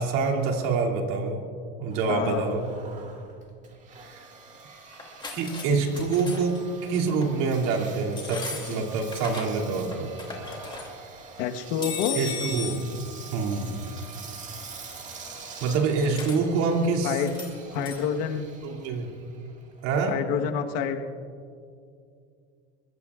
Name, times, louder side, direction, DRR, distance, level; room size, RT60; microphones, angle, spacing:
voice 1, 0.0-1.4 1.8-2.7 4.0-4.2 5.3-10.1 12.1-12.8 13.3-13.8 15.6-17.2 18.6-19.1 19.8-20.2, right 4 dB, 70° right, 0 dB, 2.8 m, -26 dB
Engine, 1.9-20.3, right 4 dB, 25° right, 1.8 m, -46 dB
voice 2, 2.1-2.5 8.7-8.8 11.4-12.2 17.0-17.3 17.7-18.4 20.1-21.1, left 8 dB, 70° left, 5 dB, 1.3 m, -28 dB
sound 1, 4.9-5.7 5.9-6.6 7.1-7.3 8.1-9.7 9.9-10.9 11.8-12.8 16.1-16.4 17.3-17.5 17.8-18.0, left 5 dB, 15° left, 2.7 m, -36 dB
23.5 x 22.0 x 2.5 m, 2.4 s
supercardioid pair, 140°, 32 cm